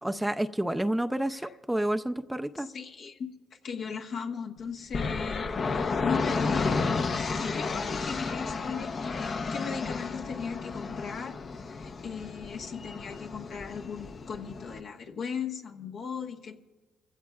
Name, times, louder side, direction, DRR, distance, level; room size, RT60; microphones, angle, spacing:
voice 1, 0.0-2.7, right 1 dB, 5° right, 8 dB, 0.5 m, -29 dB
voice 2, 2.6-16.6, left 6 dB, 65° left, 2 dB, 1.3 m, -38 dB
sound 1, 4.9-14.8, left 4 dB, 45° left, 0.8 m, -32 dB
24.5 x 16.0 x 2.4 m, 1.2 s
cardioid pair, 90°, 0 cm